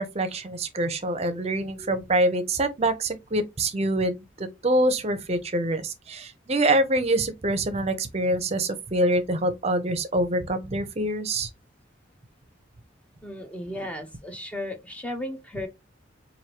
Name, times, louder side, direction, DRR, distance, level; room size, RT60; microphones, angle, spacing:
voice 1, 0.0-11.5, right 1 dB, 35° right, 0.6 m, -25 dB
voice 2, 13.2-15.7, left 1 dB, 5° left, 0.7 m, -35 dB
4.6 x 2.6 x 2.8 m
head